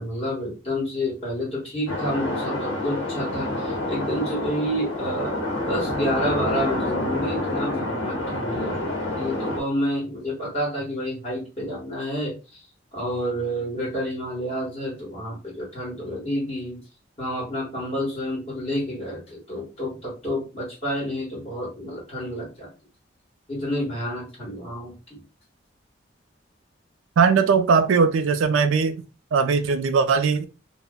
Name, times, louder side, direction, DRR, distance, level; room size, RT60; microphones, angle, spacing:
voice 1, 0.0-8.8 9.2-12.6 12.9-16.8 17.2-22.7 23.5-25.2, equal, 30° left, -5 dB, 1.1 m, -29 dB
sound 1, 1.9-9.6, left 1 dB, 90° left, 0.8 m, -28 dB
voice 2, 27.2-29.0 29.3-30.5, right 5 dB, 80° right, 8 dB, 0.4 m, -19 dB
2.3 x 2.0 x 3.5 m, 0.30 s
head